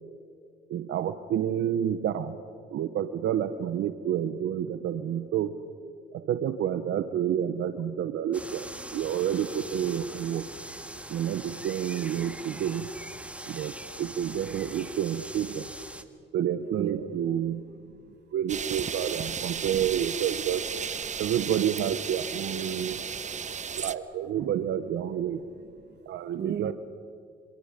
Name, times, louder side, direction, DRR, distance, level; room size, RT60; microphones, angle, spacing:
voice 1, 0.7-2.4 2.7-5.5 6.1-10.4 11.1-12.9 13.5-13.7 14.0-15.7 16.3-17.6 18.3-20.6 21.2-23.0 23.7-25.4 26.1-26.7, right 10 dB, 75° right, 10 dB, 1.0 m, -29 dB
sound 1, 8.3-16.0, right 1 dB, 5° right, 1.8 m, -42 dB
voice 2, 16.8-17.2 17.9-18.2 21.1-21.2 22.6-23.5 24.4-24.5 25.5-26.0 26.4-26.7, right 8 dB, 60° right, 12 dB, 1.4 m, -38 dB
sound 2, 18.5-23.9, right 6 dB, 35° right, 0.9 m, -34 dB
27.5 x 27.0 x 5.1 m, 2.4 s
cardioid pair, 90°, 20 cm